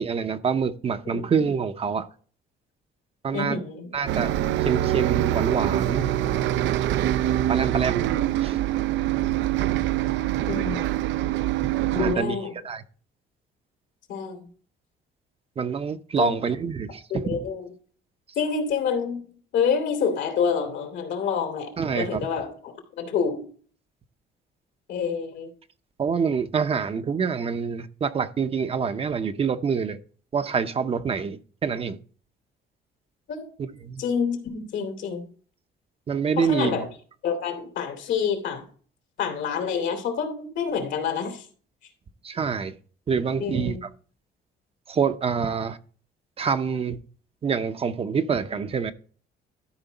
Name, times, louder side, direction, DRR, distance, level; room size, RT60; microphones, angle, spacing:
voice 1, 0.0-2.1 3.2-3.6 3.9-4.3 4.6-6.1 7.5-8.1 8.4-8.6 11.9-12.4 12.6-12.8 15.6-17.0 17.3-17.4 21.8-22.2 26.0-30.0 30.3-32.0 33.8-34.0 36.1-36.9 42.2-42.7 43.1-43.8 44.9-45.8 46.4-47.0 47.4-48.9, right 6 dB, 30° right, 0.6 m, -26 dB
voice 2, 3.3-3.9 10.5-11.0 11.9-12.5 14.1-14.4 16.2-16.3 17.1-17.6 18.4-19.2 19.5-23.4 24.9-25.5 33.3-33.4 34.0-35.2 36.4-36.9 37.2-38.6 39.2-41.5 43.4-43.8, left 6 dB, 80° left, 2.6 m, -27 dB
Bus, 4.1-12.2, right 13 dB, 80° right, 0.5 m, -24 dB
12.5 x 5.0 x 4.0 m
cardioid pair, 135°, 19 cm